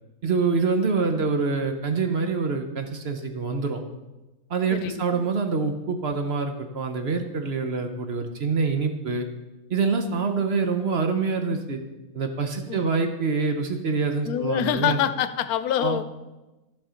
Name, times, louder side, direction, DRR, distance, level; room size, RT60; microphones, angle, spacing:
voice 1, 0.2-3.8 4.5-9.3 9.7-11.8 12.1-15.0 15.8-16.0, right 4 dB, 50° right, 5 dB, 1.0 m, -25 dB
voice 2, 4.7-5.2 12.7-12.9 14.2-16.0, left 10 dB, 80° left, 12 dB, 1.1 m, -26 dB
14.0 x 5.6 x 5.1 m, 1.1 s
omnidirectional pair, 1.6 m